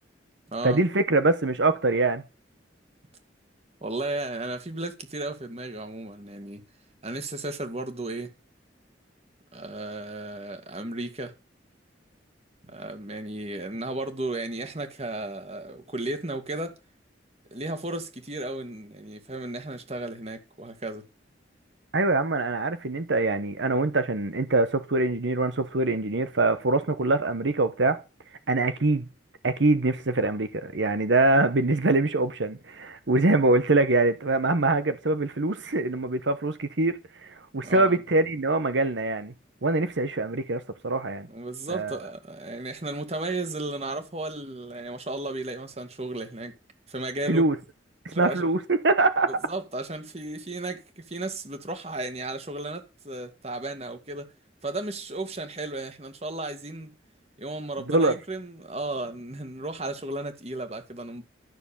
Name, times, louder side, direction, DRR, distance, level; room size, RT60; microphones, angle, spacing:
voice 1, 0.6-2.2 21.9-28.0 28.5-29.1 29.4-39.3 39.6-41.3 41.7-42.0 47.3-47.6 48.0-49.4 57.9-58.1, right 2 dB, 80° right, 1.0 m, -24 dB
voice 2, 3.8-6.6 7.0-8.3 9.5-11.3 12.7-16.8 17.5-21.0 37.6-38.0 41.3-46.5 46.9-47.5 48.1-48.5 49.4-54.3 54.6-56.9 57.4-61.2, right 2 dB, 35° right, 2.1 m, -34 dB
13.0 x 6.8 x 7.1 m
head